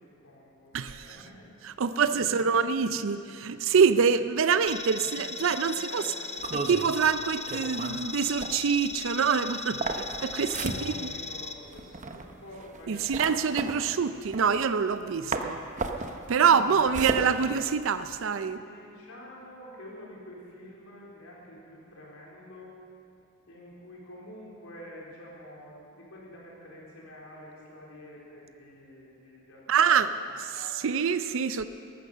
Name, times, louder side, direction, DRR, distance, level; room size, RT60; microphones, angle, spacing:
voice 1, 0.0-2.4 3.0-3.3 5.0-5.3 5.5-6.5 10.5-13.7 16.4-16.9 18.4-22.7 23.5-29.8 30.1-30.7, left 1 dB, 85° left, -4 dB, 4.0 m, -48 dB
voice 2, 0.7-1.1 1.6-6.0 6.5-10.5 12.9-15.6 16.3-18.6 29.7-30.1 30.4-30.5 30.7-31.6, right 6 dB, 65° right, 12 dB, 0.5 m, -25 dB
sound 1, 4.7-11.5, left 4 dB, 30° left, 0.6 m, -38 dB
sound 2, 6.4-15.0 15.3-18.2, right 3 dB, 35° right, 0.8 m, -35 dB
14.5 x 12.0 x 6.6 m, 2.5 s
head